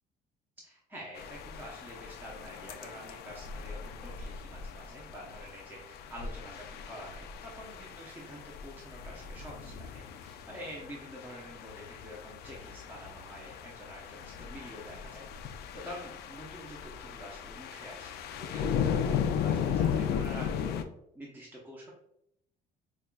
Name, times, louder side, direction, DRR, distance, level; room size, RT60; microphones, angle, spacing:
voice 1, 0.6-20.8 21.1-21.9, equal, 10° right, -4 dB, 0.8 m, -47 dB
sound 1, 1.2-20.8, left 7 dB, 70° left, 0.4 m, -37 dB
5.3 x 2.4 x 2.2 m, 0.75 s
cardioid pair, 110°, 17 cm